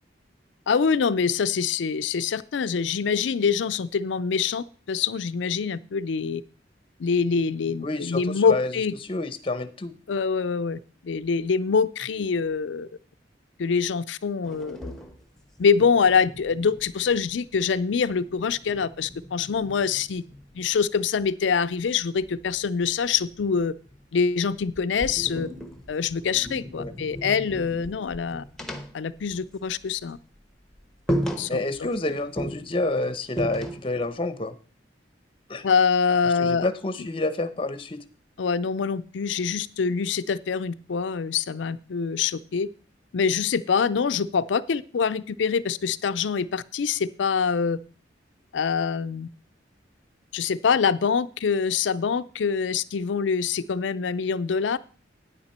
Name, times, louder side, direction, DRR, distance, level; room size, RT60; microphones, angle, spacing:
voice 1, 0.7-6.4 7.0-8.9 10.1-12.9 13.6-14.9 15.6-20.2 20.5-23.7 24.1-25.5 25.9-28.4 28.9-30.2 31.4-31.6 35.6-36.7 38.4-42.7 43.1-47.8 48.5-49.3 50.3-54.8, left 6 dB, 75° left, 16 dB, 0.4 m, -25 dB
voice 2, 7.8-8.7 9.1-9.9 26.8-26.9 31.5-34.5 35.5-35.7 36.4-38.0, left 2 dB, 30° left, 12 dB, 0.8 m, -28 dB
sound 1, 14.4-17.6 17.9-20.8 22.2-24.2 24.6-29.9 30.2-30.4 30.7-30.8 31.1-32.0 32.4-34.1, equal, 5° left, 1.0 m, -36 dB
9.6 x 8.8 x 4.3 m, 0.38 s
head